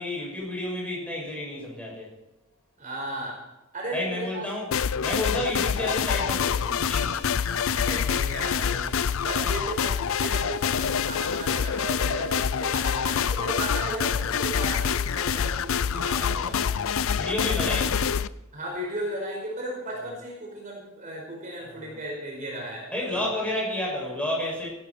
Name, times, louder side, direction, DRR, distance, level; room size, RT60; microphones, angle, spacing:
voice 1, 0.0-2.1 3.9-4.7 5.0-7.3 16.4-18.1 20.0-20.1 21.6-22.0 22.9-24.7, left 1 dB, 5° left, -3 dB, 7.0 m, -31 dB
voice 2, 2.8-3.4 3.7-4.5 7.5-16.6 18.5-22.9 23.2-23.3, right 1 dB, 35° right, -1 dB, 5.0 m, -35 dB
sound 1, 4.7-18.3, left 7 dB, 65° left, 0.5 m, -26 dB
17.0 x 13.0 x 4.5 m, 1.0 s
head